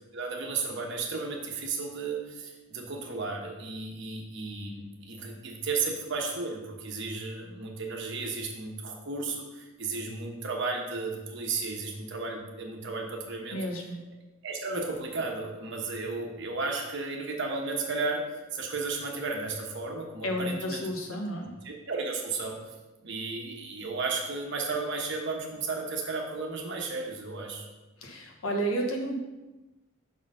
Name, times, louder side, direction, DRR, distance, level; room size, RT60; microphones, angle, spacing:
voice 1, 0.1-13.6 14.4-18.2 18.5-20.8 21.6-22.6 23.0-27.6, right 3 dB, 60° right, 1 dB, 1.1 m, -34 dB
voice 2, 13.5-14.0 20.2-21.5 28.0-29.1, right 1 dB, 85° left, 1 dB, 1.2 m, -31 dB
6.1 x 3.9 x 5.4 m, 1.1 s
head